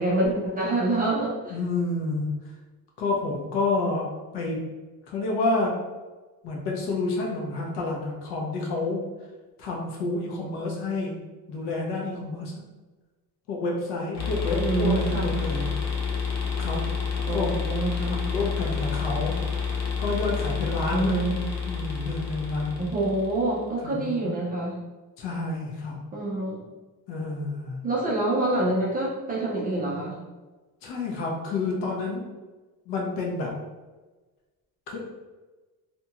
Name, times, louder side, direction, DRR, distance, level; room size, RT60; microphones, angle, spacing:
voice 1, 0.0-1.6 14.6-15.4 17.3-18.2 20.9-21.4 22.8-24.8 26.1-26.6 27.8-30.2, right 2 dB, 25° right, -5 dB, 0.3 m, -26 dB
voice 2, 1.5-2.3 3.0-4.1 4.3-4.6 5.1-5.7 6.4-9.0 9.6-11.2 11.5-12.6 13.5-15.7 16.6-16.8 17.3-17.5 18.2-19.4 20.0-21.2 21.7-22.9 23.8-24.4 25.2-26.0 27.1-27.8 30.8-32.2 32.9-33.5 34.9-35.2, left 3 dB, 85° left, -1 dB, 0.9 m, -29 dB
sound 1, 14.1-23.6, left 6 dB, 40° left, 0.4 m, -29 dB
2.7 x 2.3 x 2.8 m, 1.2 s
cardioid pair, 175°, 40 cm